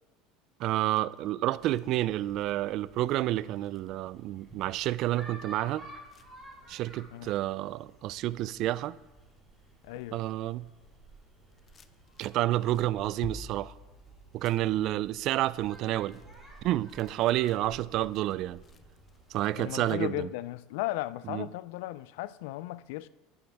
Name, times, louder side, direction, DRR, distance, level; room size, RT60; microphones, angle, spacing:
sound 1, 0.6-8.9 9.3-10.1 10.4-20.0, left 4 dB, 30° left, 0.5 m, -54 dB
voice 1, 0.6-5.9 6.7-9.0 10.1-10.7 12.2-13.8 14.3-16.2 16.6-18.6 19.3-20.3 21.3-21.5, right 15 dB, 55° right, 0.3 m, -29 dB
sound 2, 1.6-19.7, right 2 dB, ahead, 3.7 m, -53 dB
voice 2, 9.8-10.2 19.6-23.1, left 17 dB, 80° left, 0.3 m, -36 dB
10.5 x 9.3 x 3.4 m
supercardioid pair, 125°, 0 cm